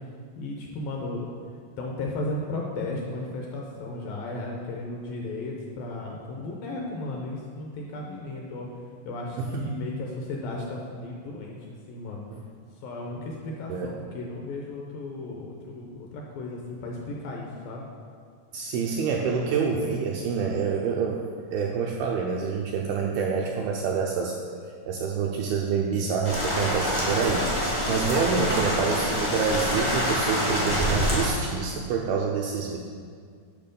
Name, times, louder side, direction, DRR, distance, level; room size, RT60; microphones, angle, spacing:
voice 1, 0.4-1.3 1.8-8.7 9.1-12.3 12.8-17.9, left 2 dB, 75° left, -1 dB, 2.2 m, -35 dB
voice 2, 9.4-9.8 12.3-12.4 13.7-13.9 18.5-21.2 21.5-24.4 24.9-32.8, right 5 dB, 85° right, 0 dB, 2.1 m, -27 dB
sound 1, 26.2-31.3, equal, 35° left, 0.3 m, -26 dB
9.0 x 6.0 x 5.2 m, 2.1 s
omnidirectional pair, 4.9 m